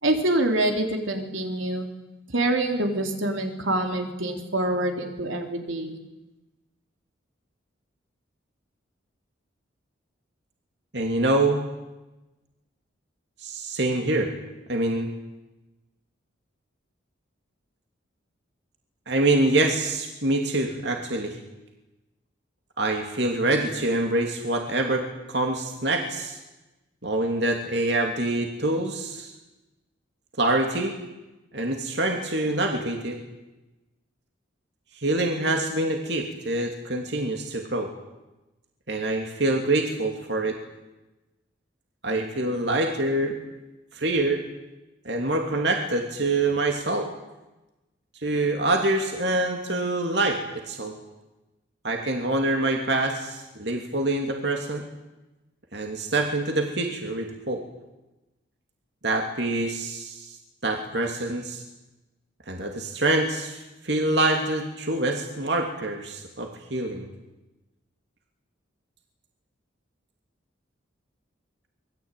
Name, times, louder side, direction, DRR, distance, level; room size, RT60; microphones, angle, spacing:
voice 1, 0.0-1.9 2.3-5.9, right 1 dB, 80° right, 4 dB, 3.8 m, -25 dB
voice 2, 10.9-11.6 13.4-14.3 14.7-15.1 19.1-21.4 22.8-26.4 27.0-29.3 30.4-31.0 31.5-33.2 34.9-37.9 38.9-40.6 42.0-43.4 43.9-44.4 45.0-47.1 48.2-50.4 50.7-50.9 51.8-54.8 55.7-57.6 59.0-60.4 60.6-61.6 62.5-67.1, right 2 dB, 55° right, 3 dB, 3.0 m, -25 dB
26.0 x 21.0 x 9.3 m, 1.0 s
head